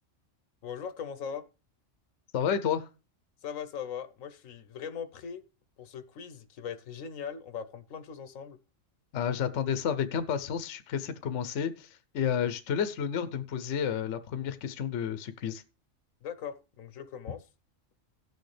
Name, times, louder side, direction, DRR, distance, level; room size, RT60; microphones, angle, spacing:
voice 1, 0.6-1.4 3.4-5.4 5.8-8.6 16.2-17.5, left 7 dB, 85° left, 1.2 m, -40 dB
voice 2, 2.3-2.9 9.1-15.6, left 8 dB, 65° left, 1.0 m, -31 dB
17.5 x 6.4 x 3.3 m
omnidirectional pair, 1.3 m